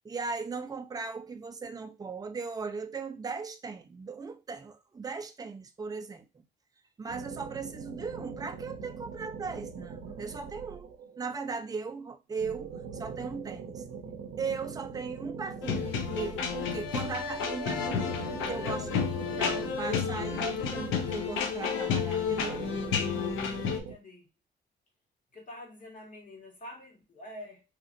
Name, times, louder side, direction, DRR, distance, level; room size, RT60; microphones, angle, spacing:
voice 1, 0.0-6.4 7.0-13.8 14.4-18.2 18.5-19.1 19.4-22.7, right 5 dB, 20° right, 0.4 m, -38 dB
sound 1, 7.1-11.3 12.4-17.0 17.6-21.7 22.3-23.9, right 6 dB, 80° right, 0.5 m, -42 dB
sound 2, 15.6-23.8, left 6 dB, 85° left, 0.6 m, -31 dB
voice 2, 23.3-24.3 25.3-27.6, left 1 dB, 40° left, 1.3 m, -47 dB
2.9 x 2.5 x 2.5 m
cardioid pair, 90°, 20 cm